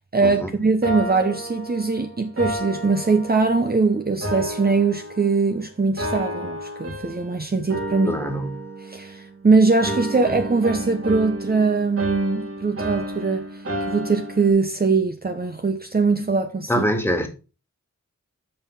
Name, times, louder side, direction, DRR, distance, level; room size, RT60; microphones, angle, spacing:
voice 1, 0.1-8.1 8.9-13.4 13.9-16.7, right 4 dB, 30° right, 0.8 m, -21 dB
sound 1, 0.8-3.8 4.2-5.6 6.0-7.4 7.7-9.4 9.8-14.5, right 1 dB, 50° right, 1.9 m, -31 dB
voice 2, 8.1-8.6 16.7-17.3, equal, 10° left, 2.0 m, -24 dB
7.0 x 5.6 x 5.4 m
wide cardioid pair, 80°, 29 cm